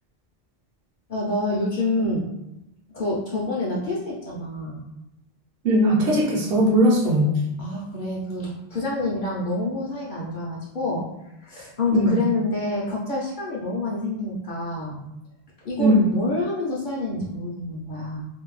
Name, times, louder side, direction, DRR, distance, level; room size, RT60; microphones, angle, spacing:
voice 1, 1.1-2.2 2.9-4.8 7.2-11.1 11.4-15.0 15.6-18.3, left 2 dB, 60° left, -4 dB, 0.6 m, -27 dB
voice 2, 5.6-7.3 11.9-12.1 15.8-15.9, right 1 dB, 70° right, -3 dB, 0.8 m, -19 dB
2.5 x 2.0 x 3.0 m, 0.90 s
omnidirectional pair, 1.1 m